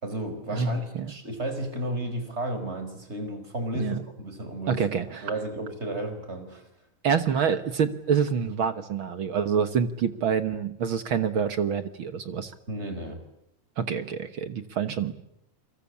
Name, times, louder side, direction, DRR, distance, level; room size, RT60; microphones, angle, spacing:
voice 1, 0.0-6.6 12.7-13.2, right 1 dB, 20° right, 8 dB, 4.8 m, -33 dB
voice 2, 0.5-1.1 3.8-4.0 4.7-5.3 7.0-12.5 13.8-15.1, right 7 dB, 55° right, 11 dB, 1.6 m, -27 dB
29.5 x 23.5 x 8.5 m, 0.76 s
omnidirectional pair, 3.6 m